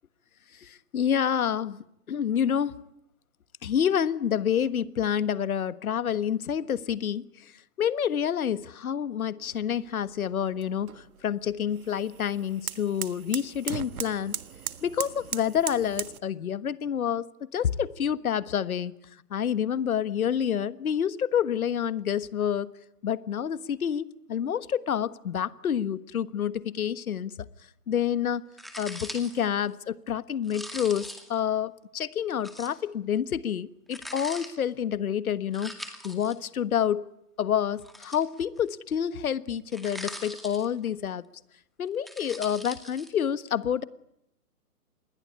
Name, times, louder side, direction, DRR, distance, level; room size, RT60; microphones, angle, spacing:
voice 1, 0.6-2.9 3.6-7.5 7.8-14.3 14.8-19.0 19.3-22.7 23.0-27.3 27.9-28.4 28.8-37.0 37.4-41.2 41.8-43.8, left 9 dB, 65° left, 16 dB, 1.4 m, -28 dB
sound 1, 9.4-16.2, right 8 dB, 65° right, 1.6 m, -39 dB
sound 2, 28.6-29.5 30.4-31.4 32.4-32.8 33.9-34.5 35.5-36.4 37.8-38.6 39.7-40.9 41.9-43.1, equal, ahead, 2.2 m, -41 dB
27.5 x 21.5 x 9.9 m, 0.78 s
hypercardioid pair, 140°, 46 cm